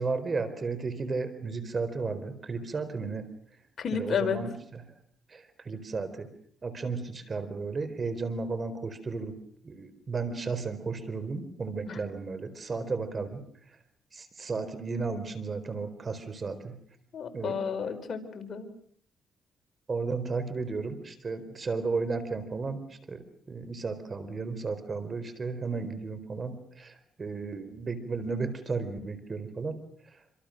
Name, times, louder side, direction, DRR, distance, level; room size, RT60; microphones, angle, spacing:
voice 1, 0.0-3.3 3.9-4.8 5.3-6.3 6.6-9.4 9.6-13.4 14.1-16.8 17.3-17.6 19.9-22.8 23.1-23.2 23.5-26.9 27.2-29.8, right 4 dB, 35° right, 12 dB, 4.3 m, -34 dB
voice 2, 3.8-4.4 11.8-12.0 17.1-18.7, left 6 dB, 50° left, 6 dB, 5.0 m, -31 dB
28.0 x 26.0 x 6.6 m, 0.62 s
cardioid pair, 90°, 0 cm